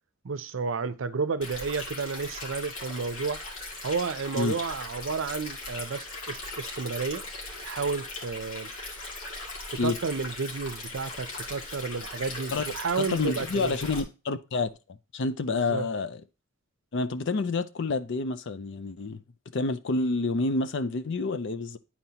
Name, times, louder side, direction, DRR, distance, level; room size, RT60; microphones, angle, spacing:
voice 1, 0.2-3.4 3.8-7.2 7.6-8.7 9.7-13.8 15.5-15.9, right 4 dB, 65° right, 0.6 m, -31 dB
Stream, 1.4-14.0, left 2 dB, 90° left, 2.2 m, -39 dB
voice 2, 12.5-14.7 15.1-16.2 16.9-19.2 19.5-21.8, left 3 dB, 60° left, 0.5 m, -28 dB
10.5 x 4.4 x 2.9 m
head